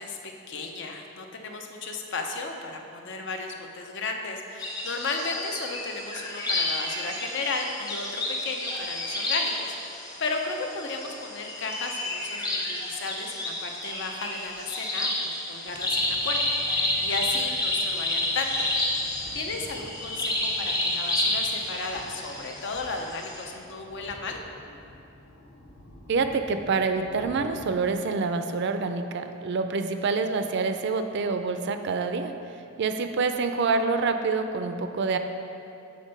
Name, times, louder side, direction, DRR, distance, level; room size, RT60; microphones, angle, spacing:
voice 1, 0.0-18.7 19.3-24.4, left 3 dB, 60° left, 3 dB, 0.6 m, -34 dB
sound 1, 4.6-23.4, left 1 dB, 20° left, 0.9 m, -30 dB
sound 2, 15.7-27.9, left 1 dB, 75° left, 1.4 m, -48 dB
voice 2, 26.1-32.3 32.8-35.2, right 4 dB, 55° right, 8 dB, 0.4 m, -26 dB
7.2 x 4.3 x 5.3 m, 2.7 s
head